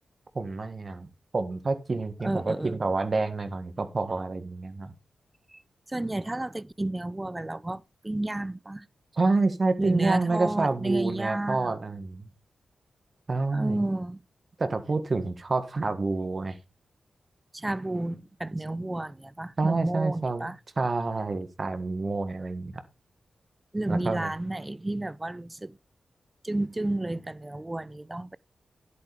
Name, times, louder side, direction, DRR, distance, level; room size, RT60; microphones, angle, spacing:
voice 1, 0.3-1.1 1.3-4.9 9.1-12.3 13.3-13.8 14.6-16.5 19.6-20.5 20.8-22.8 23.9-24.3, right 3 dB, 50° right, 1.6 m, -28 dB
voice 2, 2.2-2.8 5.5-5.6 5.9-8.9 9.8-11.7 13.5-14.2 17.5-20.6 23.7-25.8 26.4-28.4, right 1 dB, 20° right, 0.5 m, -31 dB
10.5 x 8.4 x 3.5 m
cardioid pair, 50°, 0 cm